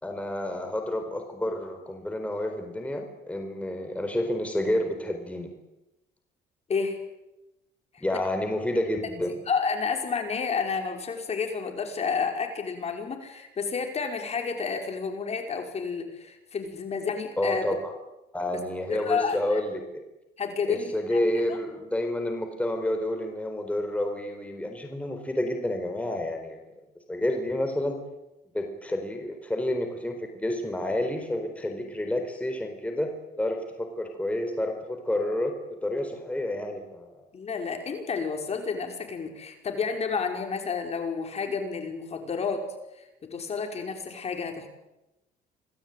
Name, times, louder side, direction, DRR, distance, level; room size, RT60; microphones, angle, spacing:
voice 1, 0.0-5.5 8.0-9.3 17.4-17.9 18.3-20.0 20.7-28.0 28.5-37.1, left 1 dB, 10° left, 4 dB, 4.2 m, -29 dB
voice 2, 9.5-17.7 18.9-19.6 20.4-21.6 37.3-42.7 42.9-44.7, left 5 dB, 40° left, 4 dB, 5.4 m, -30 dB
27.0 x 19.0 x 9.4 m, 0.96 s
cardioid pair, 110°, 17 cm